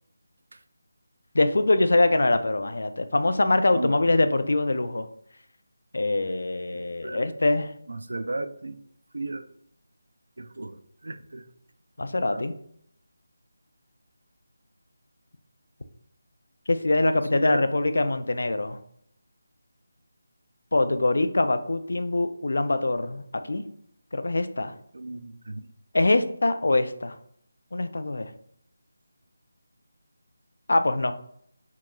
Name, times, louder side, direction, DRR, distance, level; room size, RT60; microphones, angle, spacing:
voice 1, 1.3-5.1 5.9-7.7 12.0-12.5 16.7-18.8 20.7-23.2 23.5-23.6 24.1-24.7 25.9-27.2 27.7-28.3 30.7-31.1, left 2 dB, 60° left, 10 dB, 0.4 m, -23 dB
voice 2, 6.7-7.2 7.9-8.8 9.1-9.4 10.4-10.8 11.0-11.4 12.3-12.4 17.3-17.6 24.9-25.7, right 2 dB, 70° right, 10 dB, 0.4 m, -34 dB
4.5 x 2.9 x 2.3 m, 0.68 s
figure-of-eight pair, 180°, 0 cm